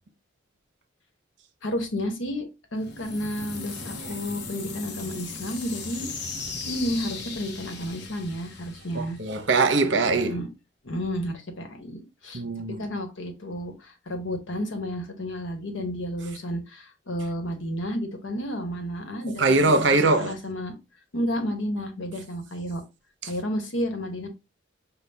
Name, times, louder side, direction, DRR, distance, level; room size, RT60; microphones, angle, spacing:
voice 1, 1.6-2.5 2.7-6.1 6.7-9.2 10.2-10.5 10.8-12.4 12.8-20.7 21.1-22.8 23.3-24.3, equal, 75° left, 1.1 m, -31 dB
sound 1, 2.8-9.6, left 4 dB, 55° left, 0.8 m, -37 dB
voice 2, 8.9-10.4 12.3-12.9 19.4-20.3, right 3 dB, 60° right, 0.7 m, -22 dB
5.5 x 2.2 x 3.4 m
head